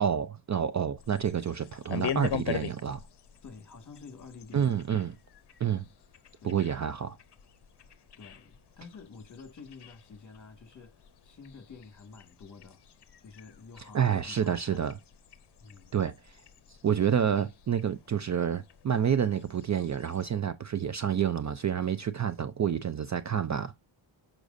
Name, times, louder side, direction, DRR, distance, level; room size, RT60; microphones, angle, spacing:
voice 1, 0.0-3.0 4.5-5.1 5.6-5.8 6.4-7.2 13.9-14.9 15.9-16.1 16.8-23.7, right 8 dB, 35° right, 0.5 m, -28 dB
sound 1, 1.0-20.3, left 9 dB, 55° left, 0.8 m, -43 dB
voice 2, 3.4-4.8 6.4-6.5 8.2-10.9 11.2-12.8 13.2-14.9 15.6-15.9, left 4 dB, 40° left, 1.9 m, -49 dB
6.5 x 6.1 x 2.6 m
wide cardioid pair, 120°, 48 cm